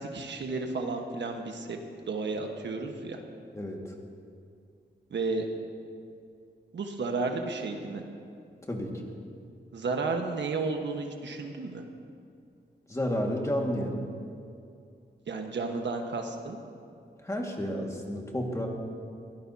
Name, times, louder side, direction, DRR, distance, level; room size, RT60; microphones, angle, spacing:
voice 1, 0.0-1.8 2.1-3.2 5.1-5.5 6.7-8.0 9.7-11.8 15.3-16.6, right 3 dB, 80° right, 3 dB, 1.3 m, -32 dB
voice 2, 3.5-3.9 8.7-9.0 12.9-14.0 17.2-18.7, equal, 15° left, 0 dB, 1.9 m, -31 dB
22.0 x 16.5 x 2.8 m, 2.4 s
wide cardioid pair, 120°, 18 cm